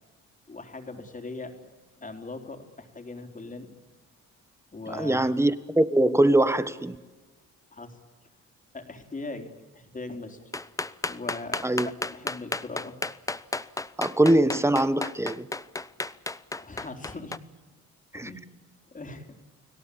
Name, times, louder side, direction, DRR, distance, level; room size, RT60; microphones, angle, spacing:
voice 1, 0.5-1.5 2.0-3.7 4.7-5.3 7.7-8.0 8.7-10.5 11.1-13.0 16.6-17.4 18.1-18.4 18.9-19.3, left 3 dB, 25° left, 4.0 m, -40 dB
voice 2, 4.9-7.0 11.6-11.9 14.0-15.5 18.1-18.3, right 1 dB, 10° right, 1.3 m, -22 dB
sound 1, 10.5-17.4, left 2 dB, 10° left, 0.8 m, -32 dB
30.0 x 18.0 x 8.7 m
cardioid pair, 90°, 30 cm